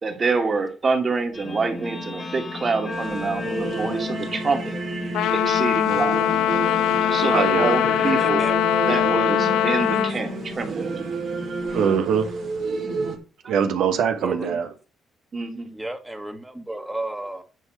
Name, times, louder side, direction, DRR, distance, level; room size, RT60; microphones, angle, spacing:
voice 1, 0.0-4.8 5.3-6.4 7.0-8.4 8.8-10.9 13.4-13.5 15.3-15.7, right 4 dB, 40° right, 2.4 m, -26 dB
Guitar, 1.3-12.0, left 3 dB, 40° left, 2.1 m, -33 dB
sound 1, 2.9-13.2, right 4 dB, 60° right, 2.1 m, -31 dB
Trumpet, 5.1-10.2, left 12 dB, 85° left, 0.3 m, -21 dB
voice 2, 7.3-7.7 11.7-12.3 13.5-14.7, right 7 dB, 80° right, 1.1 m, -22 dB
voice 3, 8.2-8.6 14.2-14.6 15.7-17.4, right 1 dB, 10° right, 1.6 m, -33 dB
9.7 x 3.7 x 6.5 m
cardioid pair, 90°, 0 cm